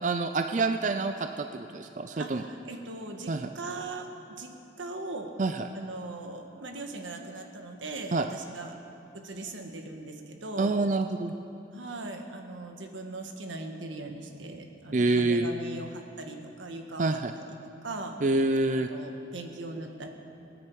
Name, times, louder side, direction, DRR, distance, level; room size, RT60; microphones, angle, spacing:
voice 1, 0.0-2.4 3.3-3.5 5.4-5.6 8.1-8.3 10.6-11.3 14.9-15.5 17.0-17.3 18.2-18.9, right 3 dB, 40° right, 7 dB, 0.4 m, -27 dB
voice 2, 2.2-4.1 4.4-5.3 5.7-8.8 9.1-10.8 11.7-17.4 17.8-18.2 18.9-20.1, right 2 dB, 90° right, 4 dB, 1.5 m, -39 dB
24.5 x 9.8 x 4.8 m, 2.8 s
head